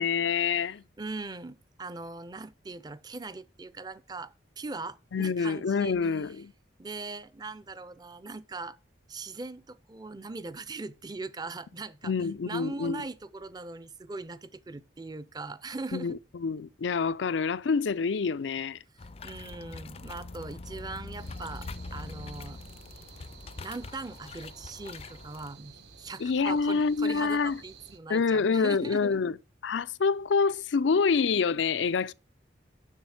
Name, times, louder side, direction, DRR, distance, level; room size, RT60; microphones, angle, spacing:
voice 1, 0.0-0.8 5.1-6.5 12.0-13.0 15.9-18.8 26.2-27.6 28.1-29.3 29.6-32.1, left 5 dB, 85° left, 0.5 m, -27 dB
voice 2, 1.0-6.0 6.8-8.8 9.1-16.2 19.2-22.6 23.3-29.2, right 3 dB, 20° right, 0.5 m, -40 dB
sound 1, 19.0-25.5, left 3 dB, 30° left, 0.4 m, -43 dB
sound 2, 21.2-28.0, right 5 dB, 70° right, 1.1 m, -52 dB
7.3 x 6.3 x 7.3 m
head